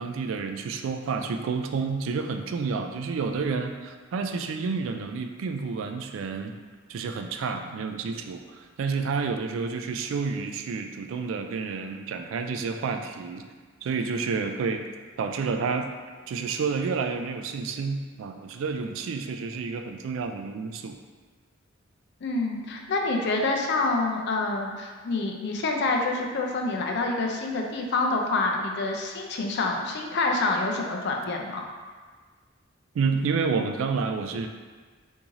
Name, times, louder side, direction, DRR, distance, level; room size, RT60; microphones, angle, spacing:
voice 1, 0.0-6.5 6.9-13.5 13.8-14.8 15.2-15.9 16.3-21.0 32.9-34.5, right 5 dB, 75° right, 6 dB, 0.3 m, -29 dB
voice 2, 22.2-31.6, left 3 dB, 60° left, 1 dB, 0.4 m, -27 dB
3.0 x 2.7 x 3.6 m, 1.5 s
head